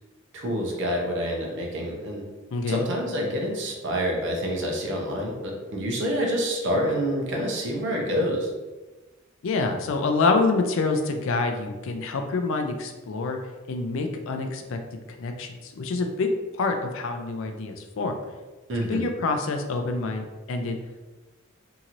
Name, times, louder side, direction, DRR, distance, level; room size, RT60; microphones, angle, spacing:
voice 1, 0.3-2.2 2.7-8.5 18.7-19.0, equal, 60° right, 0 dB, 0.7 m, -27 dB
voice 2, 2.5-2.8 9.4-13.4 13.7-14.8 15.2-16.3 16.6-18.2 18.9-20.8, left 3 dB, 65° left, 5 dB, 0.4 m, -26 dB
2.9 x 2.7 x 2.5 m, 1.2 s
head